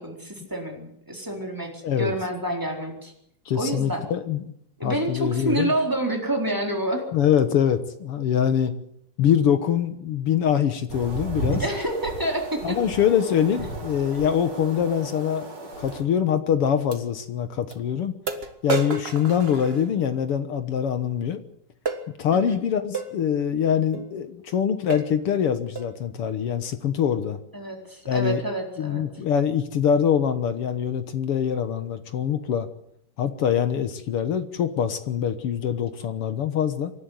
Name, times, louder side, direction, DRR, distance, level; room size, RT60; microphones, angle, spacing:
voice 1, 0.0-3.1 3.5-4.1 4.8-7.1 11.5-12.8 22.3-22.6 27.5-29.0, right 1 dB, 5° right, 1 dB, 3.8 m, -28 dB
voice 2, 3.5-4.4 4.8-5.7 7.1-8.7 9.2-11.6 12.6-15.5 15.8-18.1 18.6-21.4 22.2-27.4 28.1-28.4 28.8-32.7 33.2-36.9, left 8 dB, 55° left, 10 dB, 1.7 m, -24 dB
sound 1, 10.9-16.0, right 2 dB, 70° right, 7.2 m, -34 dB
sound 2, 15.9-16.0 16.9-17.0 17.7-17.8 18.3-20.2 21.9-22.1 22.9-23.1 23.9-24.1 24.5-24.6 24.9-25.2 25.8-26.0, right 4 dB, 40° right, 0.8 m, -31 dB
26.0 x 11.5 x 9.4 m, 0.71 s
omnidirectional pair, 3.8 m